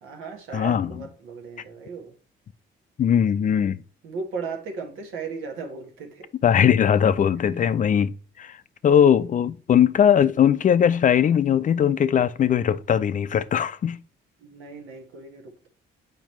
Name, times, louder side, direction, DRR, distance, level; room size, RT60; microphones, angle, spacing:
voice 1, 0.0-2.1 4.0-6.3 7.5-7.6 14.4-15.7, right 4 dB, 85° right, 1.4 m, -36 dB
voice 2, 0.5-0.9 3.0-3.8 6.4-8.1 8.4-8.6 8.8-14.0, left 8 dB, 40° left, 0.4 m, -20 dB
7.2 x 5.0 x 3.1 m
cardioid pair, 90°, 20 cm